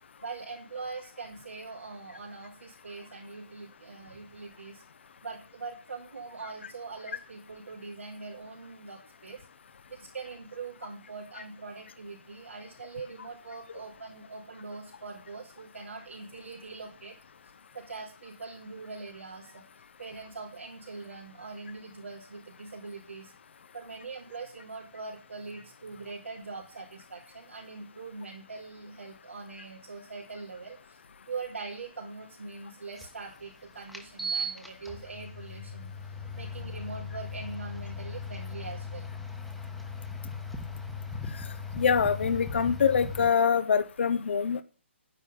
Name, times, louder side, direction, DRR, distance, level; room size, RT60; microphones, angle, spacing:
voice 1, 0.2-4.8 5.2-9.4 9.9-17.1 17.7-19.6 20.0-23.3 23.7-31.0 31.3-36.0 36.4-39.1, right 4 dB, 90° right, -3 dB, 3.6 m, -42 dB
sound 1, 33.0-33.1 33.9-43.3, left 2 dB, ahead, 1.2 m, -38 dB
voice 2, 41.8-44.6, left 6 dB, 65° left, 12 dB, 1.0 m, -24 dB
9.8 x 9.7 x 5.4 m, 0.37 s
hypercardioid pair, 150°, 7 cm